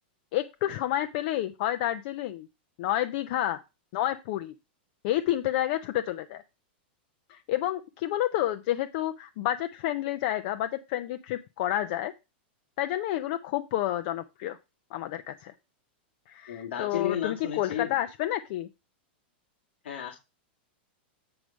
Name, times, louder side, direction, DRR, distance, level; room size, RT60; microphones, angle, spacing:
voice 1, 0.3-2.5 2.8-3.6 3.9-4.5 5.0-6.4 7.3-12.1 12.8-14.6 14.9-15.5 16.3-18.7, left 13 dB, 45° left, 9 dB, 0.6 m, -29 dB
voice 2, 16.5-18.0 19.8-20.2, left 10 dB, 90° left, 1 dB, 1.8 m, -32 dB
7.9 x 4.9 x 5.2 m, 0.27 s
supercardioid pair, 160°, 6 cm